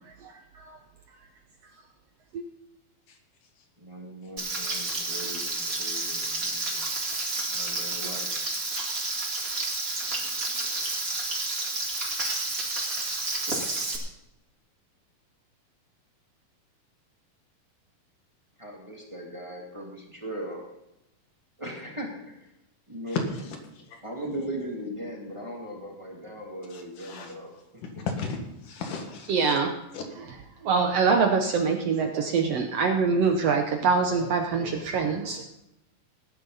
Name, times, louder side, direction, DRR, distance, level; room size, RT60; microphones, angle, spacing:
voice 1, 3.8-6.8 7.5-8.3 18.6-20.6 21.6-22.4 22.9-23.2 24.0-27.5, right 1 dB, 10° right, -1 dB, 2.0 m, -38 dB
Frying (food), 4.4-14.0, right 2 dB, 30° right, 2.4 m, -30 dB
voice 2, 23.1-23.4 23.8-24.0 26.7-27.3 28.0-29.6 29.9-30.0, left 4 dB, 85° left, 4 dB, 3.4 m, -34 dB
voice 3, 29.3-29.7 30.6-35.4, right 5 dB, 65° right, 4 dB, 1.7 m, -24 dB
17.5 x 10.0 x 4.1 m, 0.87 s
omnidirectional pair, 3.7 m